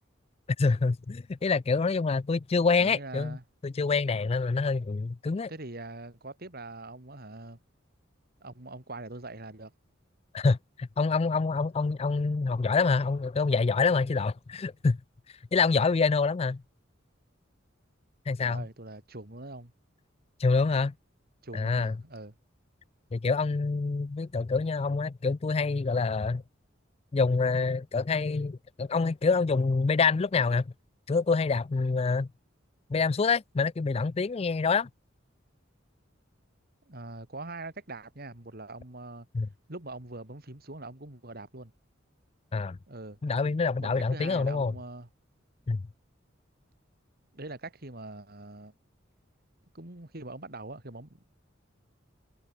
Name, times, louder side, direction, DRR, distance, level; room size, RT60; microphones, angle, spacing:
voice 1, 0.6-3.4 3.6-5.5 10.3-15.0 15.5-16.6 18.3-18.6 20.4-20.9 21.5-21.9 23.1-26.4 27.1-30.7 31.1-32.3 32.9-34.9 39.3-39.5 42.5-42.8 43.2-44.7 45.7-45.8, left 4 dB, 30° left, 0.4 m, -26 dB
voice 2, 2.8-3.4 5.5-7.6 8.4-9.7 18.4-19.7 21.4-22.3 36.8-39.3 39.7-41.7 42.9-43.2 43.8-45.1 47.3-48.7 49.7-51.2, right 2 dB, 50° right, 3.1 m, -43 dB
head